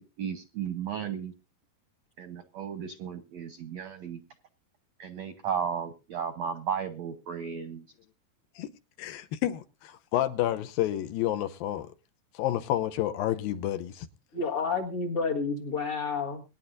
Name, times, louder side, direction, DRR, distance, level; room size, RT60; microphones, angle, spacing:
voice 1, 0.0-1.3 2.2-4.2 5.0-7.8, right 7 dB, 70° right, 1.6 m, -34 dB
voice 2, 9.0-11.9 12.3-14.1, left 13 dB, 75° left, 2.4 m, -30 dB
voice 3, 14.3-16.4, left 4 dB, 50° left, 1.8 m, -30 dB
23.0 x 10.5 x 2.6 m
omnidirectional pair, 4.5 m